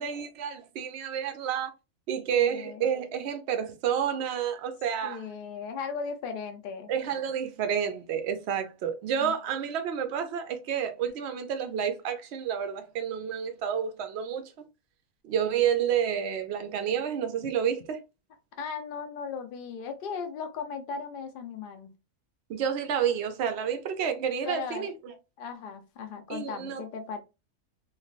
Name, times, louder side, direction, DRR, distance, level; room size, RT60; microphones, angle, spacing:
voice 1, 0.0-1.7 2.1-5.3 6.9-14.5 15.2-18.0 22.5-25.1 26.3-26.8, right 8 dB, 65° right, 0.7 m, -30 dB
voice 2, 2.3-2.9 5.0-6.9 9.2-9.3 18.6-21.9 24.4-24.9 25.4-27.2, left 5 dB, 60° left, 0.5 m, -37 dB
3.2 x 2.3 x 2.4 m
omnidirectional pair, 1.6 m